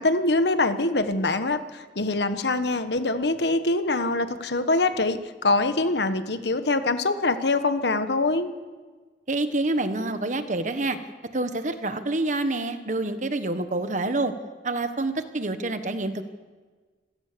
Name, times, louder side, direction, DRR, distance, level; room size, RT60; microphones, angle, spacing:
voice 1, 0.0-8.5, left 2 dB, 75° left, 10 dB, 1.4 m, -24 dB
voice 2, 9.3-11.0 11.3-14.3 14.6-16.2, right 2 dB, 45° right, 9 dB, 1.4 m, -27 dB
26.5 x 17.0 x 6.9 m, 1.4 s
head